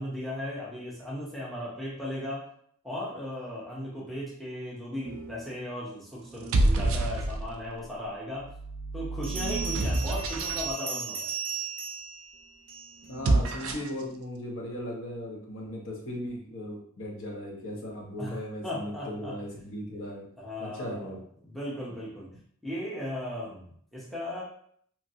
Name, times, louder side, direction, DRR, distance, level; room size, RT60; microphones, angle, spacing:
voice 1, 0.0-2.5 2.8-8.5 8.9-11.3 18.2-19.3 20.4-21.1 21.4-22.3 22.6-24.4, left 1 dB, ahead, -7 dB, 0.6 m, -36 dB
sound 1, 5.0-5.5 6.3-7.7 8.4-10.7 13.0-14.0, right 2 dB, 75° right, 0.4 m, -28 dB
Bell, 9.2-13.1, right 7 dB, 25° right, 1.0 m, -36 dB
voice 2, 13.1-20.2 20.6-21.2, left 1 dB, 65° left, -1 dB, 0.8 m, -37 dB
3.0 x 2.5 x 2.7 m, 0.63 s
head